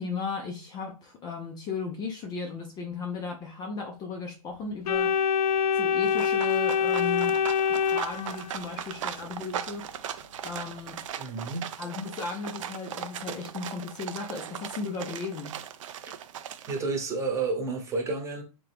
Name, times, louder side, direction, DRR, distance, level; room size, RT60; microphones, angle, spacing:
voice 1, 0.0-5.1 5.7-7.4 7.7-9.8 10.4-11.0 11.8-15.6, left 4 dB, 20° left, 0.5 m, -36 dB
Organ, 4.9-8.8, left 7 dB, 75° left, 0.4 m, -25 dB
sound 1, 6.0-16.8, right 9 dB, 55° right, 0.5 m, -38 dB
voice 2, 11.2-11.8 16.1-16.2 16.7-18.4, right 3 dB, 15° right, 1.0 m, -31 dB
3.6 x 2.9 x 3.4 m
hypercardioid pair, 130°, 20 cm